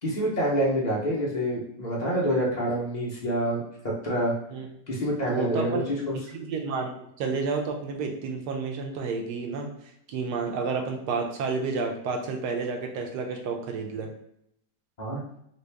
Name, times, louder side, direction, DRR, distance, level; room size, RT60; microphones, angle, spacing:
voice 1, 0.0-4.4 4.9-6.2 15.0-15.2, equal, 40° left, -4 dB, 0.6 m, -27 dB
voice 2, 5.3-5.9 6.3-6.9 7.2-9.7 10.1-14.1, right 4 dB, 85° right, 3 dB, 1.2 m, -30 dB
3.0 x 2.8 x 3.3 m, 0.73 s
omnidirectional pair, 1.8 m